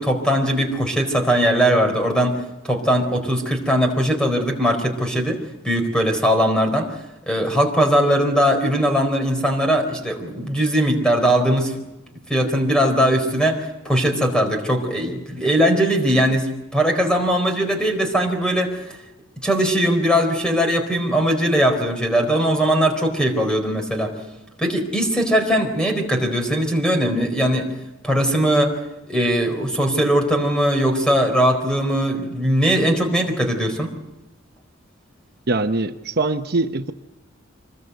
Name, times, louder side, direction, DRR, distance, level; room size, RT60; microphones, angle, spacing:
voice 1, 0.0-2.4 2.6-5.4 5.6-6.9 7.3-11.7 12.3-13.6 13.8-18.7 19.4-24.1 24.6-27.7 28.0-28.7 29.1-33.9, equal, 5° left, 4 dB, 4.3 m, -20 dB
voice 2, 35.5-36.9, right 3 dB, 50° right, 6 dB, 0.9 m, -22 dB
25.5 x 21.0 x 8.1 m, 0.98 s
head